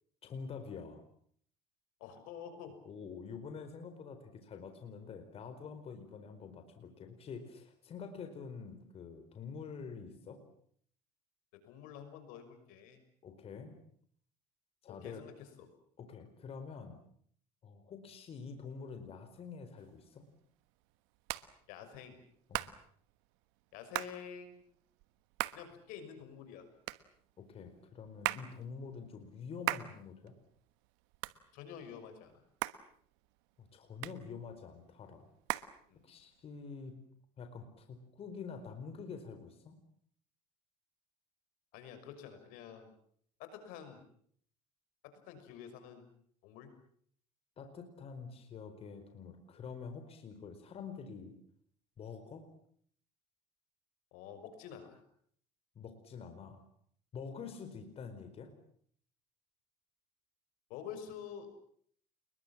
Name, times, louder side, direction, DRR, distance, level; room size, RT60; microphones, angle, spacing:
voice 1, 0.2-1.0 2.8-10.4 13.2-13.7 14.8-15.2 16.0-17.0 17.6-20.3 22.5-22.7 27.4-30.3 33.6-35.3 36.0-36.9 37.4-39.8 47.6-51.4 52.0-52.5 55.7-56.6 57.1-58.5, left 5 dB, 45° left, 7 dB, 4.5 m, -47 dB
voice 2, 2.0-2.8 6.1-6.2 11.6-13.0 14.9-15.7 21.7-22.2 23.7-24.6 25.5-26.7 31.5-32.4 35.9-36.0 41.7-42.9 43.4-44.0 45.0-46.1 46.4-46.7 54.1-55.0 60.7-61.5, left 8 dB, 75° left, 9 dB, 6.0 m, -48 dB
Hands, 19.8-36.4, right 20 dB, 85° right, 1.3 m, -43 dB
29.0 x 22.0 x 7.4 m, 0.63 s
supercardioid pair, 100°, 14 cm